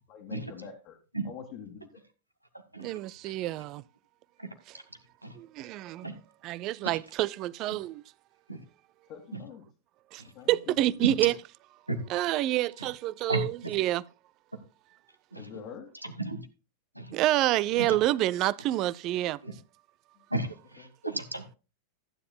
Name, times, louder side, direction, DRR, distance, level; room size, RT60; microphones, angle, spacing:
voice 1, 0.1-1.0 1.2-2.0 9.1-9.6 10.4-11.1 15.3-15.9, left 7 dB, 40° left, 1.8 m, -45 dB
voice 2, 2.8-3.8 5.4-6.1 6.4-8.0 10.1-10.2 10.5-11.3 12.1-14.0 17.1-19.4, right 15 dB, 40° right, 0.4 m, -28 dB
voice 3, 11.0-11.3 11.9-12.1 12.8-12.9 13.3-13.7 14.5-14.6 15.3-15.5 16.0-16.5 16.9-17.2 17.8-18.0 19.4-19.5 20.3-21.6, right 2 dB, 85° right, 1.6 m, -34 dB
15.0 x 9.7 x 2.2 m
figure-of-eight pair, 90°, 0 cm